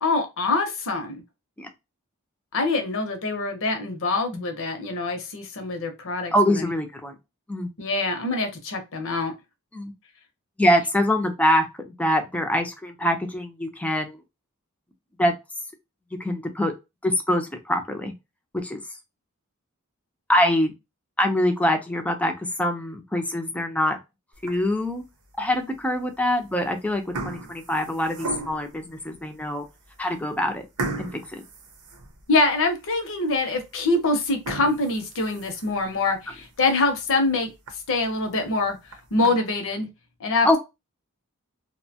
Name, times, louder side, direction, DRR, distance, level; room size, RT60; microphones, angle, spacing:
voice 1, 0.0-1.2 2.5-6.7 7.8-9.3 32.3-37.5 37.9-39.9 40.2-40.6, left 3 dB, 60° left, 6 dB, 0.8 m, -25 dB
voice 2, 6.3-7.2 7.5-7.7 9.7-9.9 10.6-14.2 15.2-15.4 16.2-16.7 17.0-18.1 18.5-18.8 20.3-20.7 21.2-24.0 24.4-25.0 25.4-29.7 30.0-30.6 31.0-31.4 40.4-40.6, left 1 dB, 5° left, 4 dB, 0.5 m, -24 dB
sound 1, 24.3-24.9 25.4-25.6 26.4-26.7 26.9-28.8 29.4-29.5 29.9-30.0 30.8-32.5 33.0-33.1 33.5-33.6 34.3-35.9 36.3-36.4 36.8-36.9 37.3-37.4 37.7-37.8 38.7-39.3, right 3 dB, 80° right, 0.7 m, -35 dB
2.7 x 2.1 x 2.7 m, 0.23 s
head